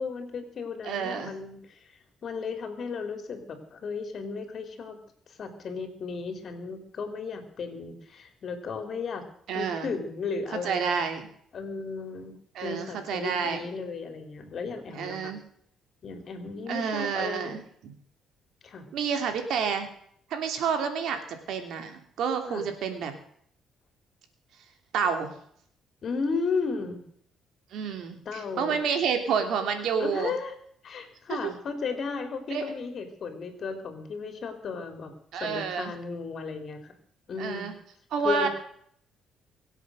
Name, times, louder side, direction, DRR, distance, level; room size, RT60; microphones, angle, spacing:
voice 1, 0.0-1.8 2.2-5.0 5.3-9.2 9.5-10.9 11.5-12.3 12.6-15.3 16.0-17.6 18.6-18.8 22.5-22.7 26.0-27.0 28.2-28.8 30.0-30.5 30.8-36.9 37.3-37.7 38.2-38.5, left 4 dB, 50° left, 7 dB, 3.4 m, -34 dB
voice 2, 0.8-1.3 9.5-9.9 10.6-11.3 12.5-13.6 14.9-15.4 16.7-17.9 18.9-19.9 20.3-23.1 24.9-25.3 27.7-30.3 31.3-31.5 32.5-32.6 35.3-35.9 37.4-37.7 38.1-38.5, right 6 dB, 75° right, 7 dB, 2.8 m, -29 dB
24.0 x 8.2 x 6.3 m, 0.65 s
cardioid pair, 90°, 0 cm